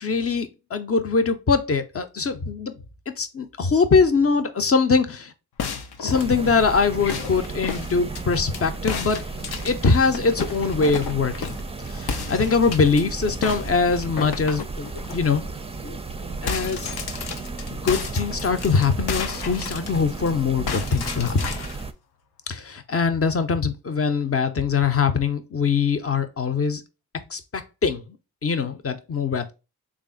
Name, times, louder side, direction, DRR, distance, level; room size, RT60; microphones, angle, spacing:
voice 1, 0.0-5.3 6.0-9.2 9.6-15.4 15.8-16.0 16.4-16.9 17.7-21.6 22.5-26.8 27.3-28.2 28.4-29.5, left 5 dB, 35° left, 0.7 m, -23 dB
sound 1, 5.6-8.6 8.9-11.7 12.1-13.0 13.4-15.2 15.6-15.7 16.0-20.3 20.7-21.8, left 6 dB, 70° left, 0.7 m, -33 dB
sound 2, 6.1-21.9, right 3 dB, 15° right, 0.5 m, -34 dB
3.3 x 2.4 x 3.8 m
supercardioid pair, 40°, 40 cm